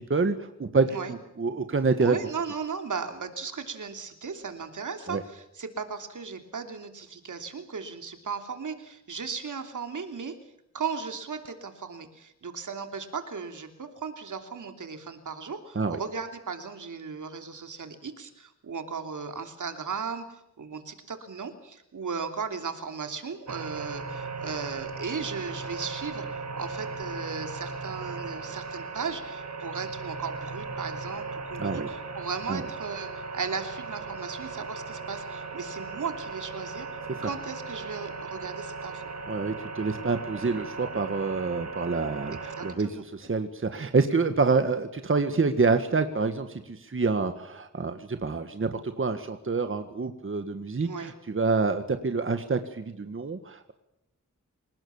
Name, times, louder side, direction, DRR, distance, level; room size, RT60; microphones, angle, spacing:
voice 1, 0.0-2.2 5.1-5.2 15.7-16.0 31.6-31.9 32.5-32.7 39.3-53.7, right 4 dB, 40° right, 8 dB, 1.6 m, -27 dB
voice 2, 2.0-10.3 10.7-26.2 26.6-36.9 37.2-39.1 42.6-43.0 50.8-51.1, right 5 dB, 75° right, 6 dB, 3.1 m, -36 dB
sound 1, 23.5-42.7, right 4 dB, 60° right, 4.2 m, -37 dB
28.0 x 19.0 x 7.2 m, 0.81 s
wide cardioid pair, 105°, 31 cm